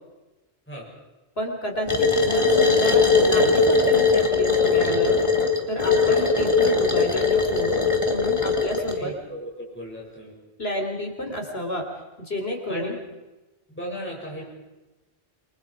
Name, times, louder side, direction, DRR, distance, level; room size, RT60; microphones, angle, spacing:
voice 1, 1.4-5.2 5.7-7.8 8.1-9.1 10.6-11.9 12.2-13.0, left 1 dB, 60° left, 3 dB, 4.0 m, -30 dB
sound 1, 1.9-9.0, left 4 dB, 25° left, 2.3 m, -20 dB
voice 2, 8.6-10.3 12.7-12.9 13.7-14.4, equal, 10° left, -4 dB, 6.8 m, -36 dB
28.0 x 24.5 x 5.0 m, 1.1 s
omnidirectional pair, 1.2 m